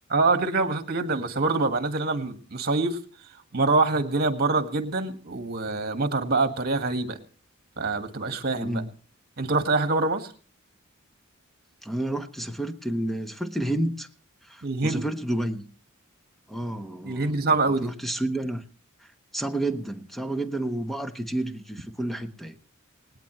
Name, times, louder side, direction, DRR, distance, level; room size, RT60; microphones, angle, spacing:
voice 1, 0.1-3.0 3.5-7.2 7.8-8.8 9.4-10.3 14.6-15.0 17.1-17.9, right 3 dB, 50° right, 7 dB, 1.9 m, -25 dB
voice 2, 8.6-8.9 11.8-14.1 14.5-15.6 16.5-17.5 17.8-18.6 19.3-22.6, right 1 dB, ahead, 7 dB, 1.1 m, -30 dB
19.5 x 18.5 x 3.2 m, 0.39 s
head